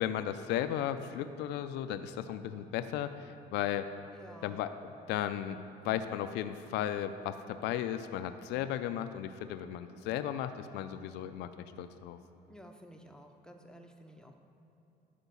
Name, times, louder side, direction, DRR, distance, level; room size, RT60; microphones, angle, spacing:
voice 1, 0.0-3.9 4.4-4.7 5.1-11.5 11.8-12.2, left 10 dB, 90° left, 10 dB, 0.5 m, -35 dB
voice 2, 4.1-4.6 12.5-14.4, equal, 5° left, 3 dB, 0.7 m, -52 dB
12.0 x 5.0 x 7.0 m, 3.0 s
cardioid pair, 110°, 17 cm